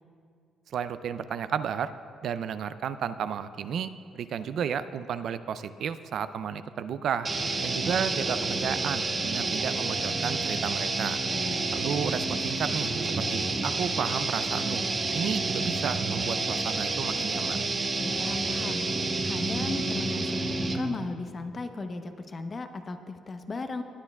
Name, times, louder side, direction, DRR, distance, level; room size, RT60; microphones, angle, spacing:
voice 1, 0.7-1.9 2.2-7.3 7.6-11.2 11.7-14.8 15.1-17.6, right 8 dB, 70° right, 12 dB, 0.4 m, -32 dB
sound 1, 7.2-21.0, right 3 dB, 35° right, 1.0 m, -29 dB
voice 2, 18.0-18.8 19.2-23.8, left 3 dB, 35° left, 7 dB, 0.8 m, -36 dB
19.5 x 9.6 x 2.3 m, 2.4 s
cardioid pair, 90°, 0 cm